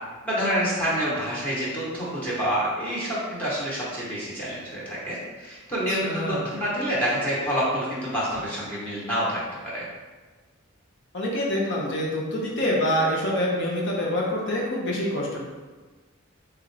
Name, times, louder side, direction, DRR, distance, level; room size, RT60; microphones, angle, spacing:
voice 1, 0.2-9.4 9.7-9.8, equal, 10° left, -9 dB, 1.0 m, -27 dB
voice 2, 5.9-6.5 11.1-15.4, left 1 dB, 55° left, -3 dB, 0.7 m, -26 dB
3.6 x 3.1 x 3.3 m, 1.3 s
head